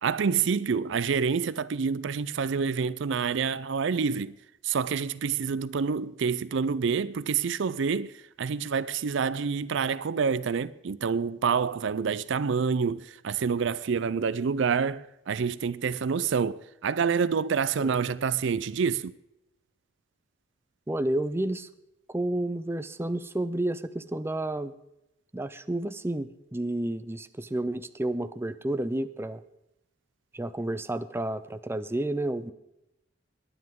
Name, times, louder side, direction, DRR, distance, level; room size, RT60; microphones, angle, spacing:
voice 1, 0.0-4.4 4.6-8.1 8.4-19.1, right 6 dB, 70° right, 0.5 m, -27 dB
voice 2, 20.9-21.7 22.1-24.7 25.3-29.4 30.3-32.5, right 1 dB, 15° right, 0.5 m, -31 dB
21.5 x 10.0 x 3.7 m
head